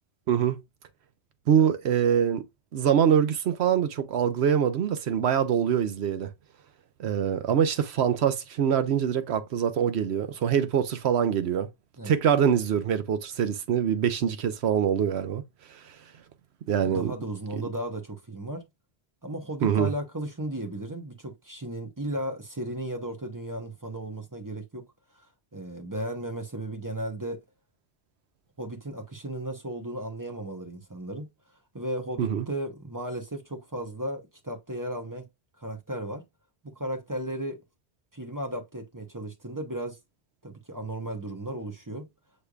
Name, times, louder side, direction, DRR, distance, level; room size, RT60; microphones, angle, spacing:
voice 1, 1.5-2.4 2.7-6.3 7.0-11.7 12.0-15.4 15.7-15.8 16.7-17.1 19.6-19.9 32.2-32.5, right 8 dB, 85° right, 1.0 m, -24 dB
voice 2, 16.8-18.6 19.2-24.8 25.5-27.4 28.6-31.3 31.7-35.3 35.6-36.2 36.6-37.6 38.1-40.0 40.4-42.1, right 1 dB, 20° right, 1.0 m, -35 dB
6.5 x 3.3 x 2.4 m
omnidirectional pair, 1.1 m